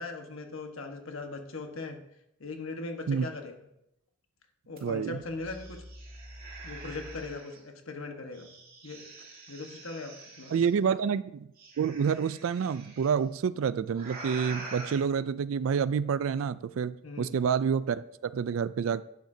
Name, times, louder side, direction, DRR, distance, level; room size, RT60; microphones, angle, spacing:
voice 1, 0.0-2.0 2.4-3.5 4.7-5.8 6.6-8.5 8.8-9.0 9.5-10.6 17.0-17.3, left 3 dB, 65° left, 4 dB, 1.3 m, -39 dB
sound 1, 4.8-4.9 5.2-7.6 8.3-10.7 11.6-13.1 13.9-15.0, right 2 dB, 45° right, 2.7 m, -45 dB
voice 2, 4.8-5.2 10.5-11.5 11.8-19.0, right 6 dB, 65° right, 16 dB, 0.3 m, -28 dB
11.5 x 9.2 x 2.7 m, 0.81 s
head